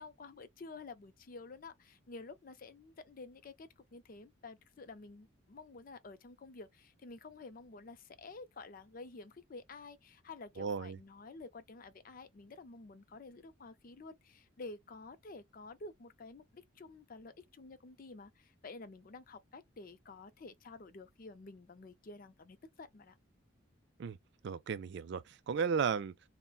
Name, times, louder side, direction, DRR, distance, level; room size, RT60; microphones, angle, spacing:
voice 1, 0.0-23.2, left 3 dB, 40° left, 0.4 m, -51 dB
voice 2, 10.6-11.0 24.0-24.2 24.4-26.3, right 6 dB, 55° right, 0.3 m, -35 dB
3.8 x 2.1 x 2.3 m
head